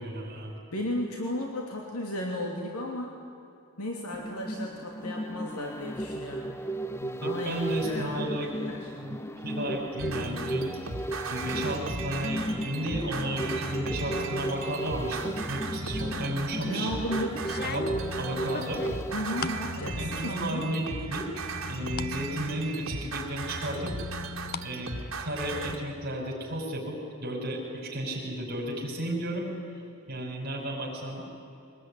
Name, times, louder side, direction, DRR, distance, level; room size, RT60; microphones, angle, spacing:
voice 1, 0.0-0.5 7.0-8.5 9.0-10.7 11.3-16.9 17.6-17.9 18.2-18.8 19.9-21.4 21.7-23.9 24.6-24.9 25.2-29.5 30.1-31.2, right 1 dB, 45° right, -2 dB, 5.2 m, -33 dB
voice 2, 0.7-3.2 3.8-6.6 7.2-8.9 16.6-17.5 19.1-20.7, left 1 dB, 85° left, 1 dB, 2.9 m, -34 dB
sound 1, 4.1-20.4 20.7-20.8, right 1 dB, 10° left, 0.5 m, -35 dB
sound 2, 10.0-25.8, right 2 dB, 65° right, 2.5 m, -36 dB
sound 3, 16.4-16.8 17.4-19.7 20.1-20.7 21.0-22.2 22.6-22.7 23.5-24.7 25.0-25.8, left 5 dB, 45° left, 0.8 m, -39 dB
24.0 x 19.5 x 9.9 m, 2.7 s
head